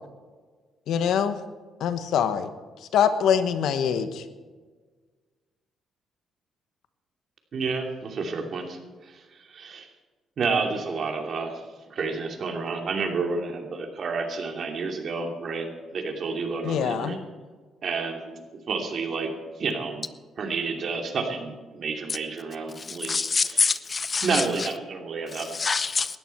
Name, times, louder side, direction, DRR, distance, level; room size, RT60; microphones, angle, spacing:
voice 1, 0.9-1.4 1.8-2.5 2.9-4.2 16.6-17.2, left 8 dB, 80° left, 1.2 m, -24 dB
voice 2, 7.5-8.8 9.0-9.2 9.5-9.9 10.4-11.5 11.9-17.2 17.8-18.4 18.7-19.3 19.6-20.0 20.4-23.1 23.5-23.7 24.2-25.5, right 4 dB, 55° right, 2.8 m, -30 dB
voice 3, 22.8-24.7 25.3-26.2, left 4 dB, 35° left, 0.7 m, -26 dB
18.5 x 13.5 x 4.6 m
cardioid pair, 90°, 0 cm